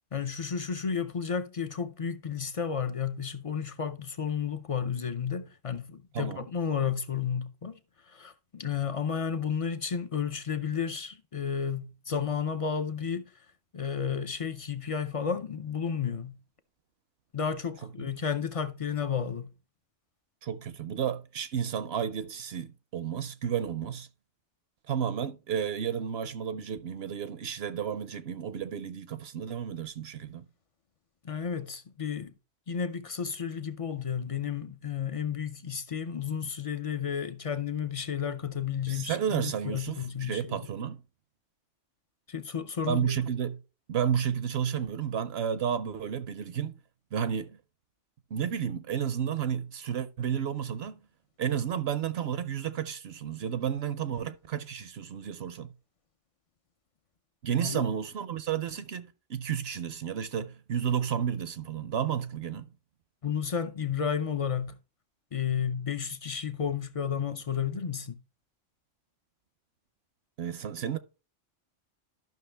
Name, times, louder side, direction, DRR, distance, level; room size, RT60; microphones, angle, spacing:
voice 1, 0.1-7.8 8.1-13.2 13.7-16.4 17.3-19.5 31.2-32.3 32.7-40.6 42.3-43.1 57.6-57.8 63.2-64.7 65.3-68.2, left 7 dB, 50° left, 0.4 m, -32 dB
voice 2, 6.1-6.5 17.8-18.1 20.4-24.1 24.9-30.4 38.9-41.0 42.9-43.6 43.9-46.8 47.1-47.6 48.3-51.0 51.4-55.7 57.4-62.7 70.4-71.0, right 8 dB, 65° right, 0.7 m, -32 dB
12.0 x 5.8 x 3.3 m
omnidirectional pair, 1.3 m